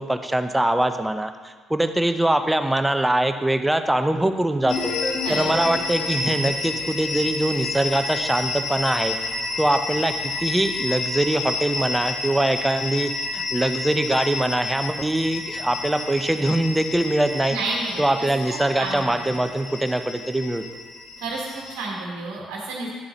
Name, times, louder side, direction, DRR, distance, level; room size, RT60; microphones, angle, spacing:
voice 1, 0.0-4.9 5.3-9.2 9.6-17.6 18.0-20.6, right 1 dB, 10° right, 8 dB, 0.6 m, -23 dB
sound 1, 4.6-7.6, left 3 dB, 30° left, 1.6 m, -32 dB
sound 2, 4.7-21.8, left 3 dB, 55° left, 1.1 m, -30 dB
voice 2, 5.2-5.8 17.5-17.9 18.2-19.2 21.2-22.9, right 3 dB, 65° right, -2 dB, 1.3 m, -31 dB
9.9 x 7.5 x 3.0 m, 1.5 s
figure-of-eight pair, 45°, 0 cm